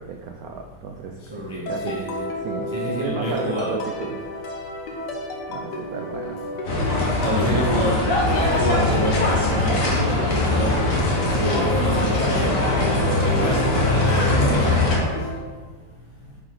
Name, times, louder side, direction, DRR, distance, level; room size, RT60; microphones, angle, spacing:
voice 1, 0.0-1.2 1.7-2.0 2.4-4.2 5.5-6.4 7.2-7.8, right 6 dB, 80° right, 3 dB, 0.8 m, -32 dB
voice 2, 1.3-2.3 2.7-3.8 7.2-10.9 11.4-12.7 12.9-15.2, right 1 dB, 35° right, -3 dB, 0.4 m, -28 dB
sound 1, 1.7-15.4, left 1 dB, 60° left, 1.6 m, -32 dB
sound 2, 6.6-15.0, left 2 dB, 45° left, 1.7 m, -21 dB
9.2 x 4.8 x 3.8 m, 1.4 s
omnidirectional pair, 2.2 m